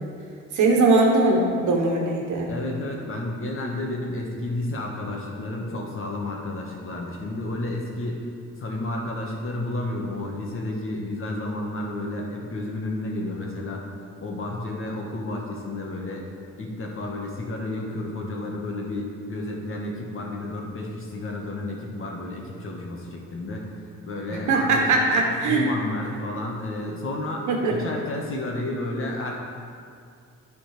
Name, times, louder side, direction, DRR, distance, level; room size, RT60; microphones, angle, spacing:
voice 1, 0.5-2.5 24.3-25.7 27.5-27.7, right 3 dB, 75° right, 0 dB, 1.4 m, -20 dB
voice 2, 2.5-8.2 8.6-13.8 14.2-16.2 16.6-23.7 24.0-24.9 25.5-29.3, left 1 dB, 45° left, -1 dB, 1.6 m, -31 dB
10.5 x 4.4 x 5.0 m, 2.3 s
cardioid pair, 90°, 30 cm